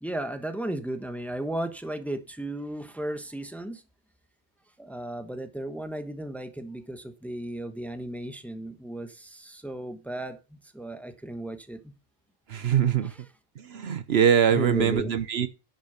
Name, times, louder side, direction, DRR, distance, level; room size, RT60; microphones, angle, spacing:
voice 1, 0.0-3.8 4.8-12.0 13.0-13.2 14.5-15.1, right 1 dB, ahead, 1.1 m, -35 dB
voice 2, 12.5-13.1 13.6-15.5, right 8 dB, 65° right, 1.0 m, -23 dB
10.5 x 6.6 x 5.8 m
omnidirectional pair, 1.1 m